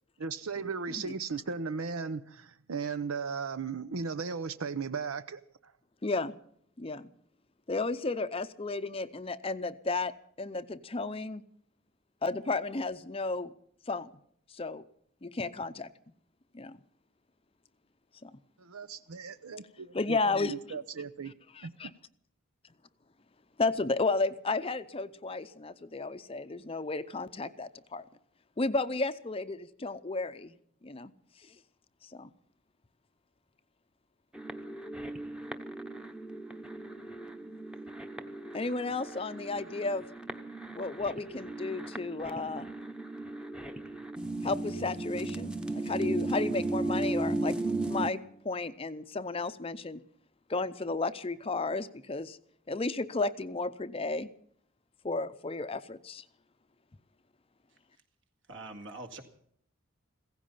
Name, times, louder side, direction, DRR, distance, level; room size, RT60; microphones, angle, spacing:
voice 1, 0.2-5.4 18.6-21.3 21.6-21.7, right 5 dB, 90° right, 12 dB, 0.7 m, -36 dB
voice 2, 6.0-6.4 6.8-7.1 7.7-10.1 10.4-11.4 12.2-13.5 13.9-14.1 14.5-14.8 15.2-15.9 16.5-16.8 18.2-18.4 19.9-20.8 21.5-21.9 23.6-28.0 28.6-30.6 30.8-31.1 32.0-32.3 38.5-40.0 40.7-42.7 44.4-48.2 48.4-50.0 50.5-52.4 52.7-54.3 55.0-56.2, left 3 dB, 25° left, 12 dB, 0.6 m, -33 dB
sound 1, 34.3-48.1, right 2 dB, 5° right, 0.9 m, -36 dB
voice 3, 58.5-59.2, right 2 dB, 60° right, 5 dB, 2.3 m, -43 dB
16.5 x 15.5 x 5.6 m, 0.67 s
head